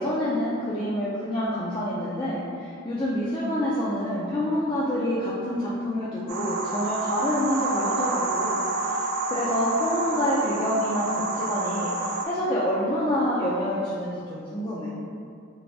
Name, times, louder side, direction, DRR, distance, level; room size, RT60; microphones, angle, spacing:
voice 1, 0.0-9.0 9.3-11.9 12.2-14.9, equal, 25° left, -8 dB, 0.3 m, -27 dB
sound 1, 6.3-12.2, right 3 dB, 85° right, 0.4 m, -29 dB
3.2 x 2.6 x 2.5 m, 2.4 s
head